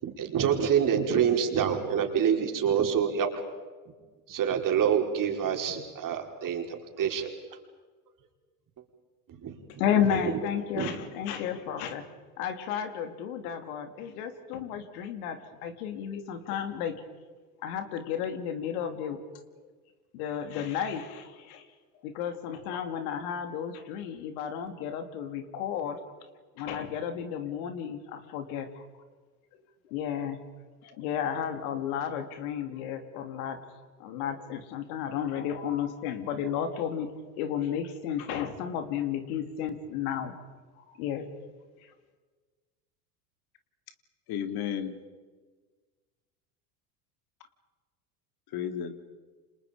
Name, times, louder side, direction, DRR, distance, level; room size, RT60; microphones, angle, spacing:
voice 1, 0.0-3.3 4.3-7.3 9.4-9.6 10.7-10.9, right 8 dB, 45° right, 3 dB, 4.8 m, -26 dB
voice 2, 9.8-16.9 17.6-19.2 20.1-21.7 22.0-26.0 26.6-28.8 29.5-30.4 30.8-33.6 34.0-40.4 40.8-41.5 41.8-41.9, left 8 dB, 70° left, 7 dB, 3.2 m, -33 dB
voice 3, 44.3-44.9 48.5-48.9, left 9 dB, 55° left, 8 dB, 2.7 m, -32 dB
29.5 x 27.5 x 5.3 m, 1.4 s
hypercardioid pair, 75°, 46 cm